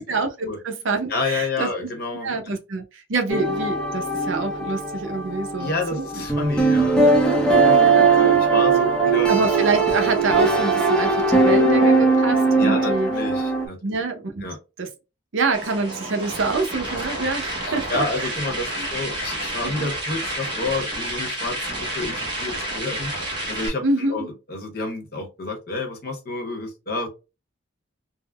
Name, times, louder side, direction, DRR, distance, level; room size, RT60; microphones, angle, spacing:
voice 1, 0.0-1.7 2.2-6.2 7.0-7.2 7.8-8.1 9.3-13.1 13.8-14.4 14.8-14.9 15.3-18.3 18.8-18.9 19.6-19.9 23.8-24.3, right 3 dB, 75° right, 0.6 m, -26 dB
voice 2, 1.1-2.4 5.6-9.3 12.6-13.8 14.4-14.6 16.9-17.3 17.6-23.1 23.5-24.2 24.5-27.1, left 3 dB, 50° left, 0.9 m, -29 dB
sound 1, 3.3-13.7, right 3 dB, 5° left, 0.5 m, -19 dB
sound 2, 15.5-23.7, right 1 dB, 25° right, 0.8 m, -30 dB
3.6 x 2.1 x 2.2 m
head